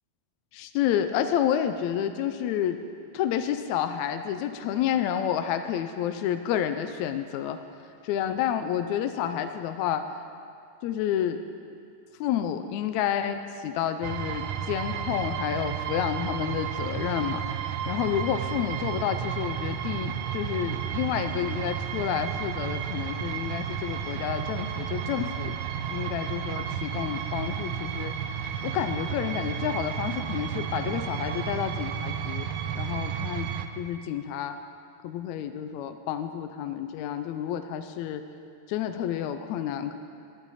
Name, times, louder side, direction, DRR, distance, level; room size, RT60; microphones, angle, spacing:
voice 1, 0.5-2.8 3.1-7.6 8.0-10.1 10.8-11.4 12.2-25.5 25.9-28.1 28.6-32.5 32.8-33.5 33.8-34.6 35.0-38.2 38.7-40.0, left 10 dB, 80° left, 8 dB, 1.8 m, -29 dB
sound 1, 14.0-33.7, right 8 dB, 80° right, 2.0 m, -32 dB
20.0 x 10.5 x 4.1 m, 2.4 s
omnidirectional pair, 3.4 m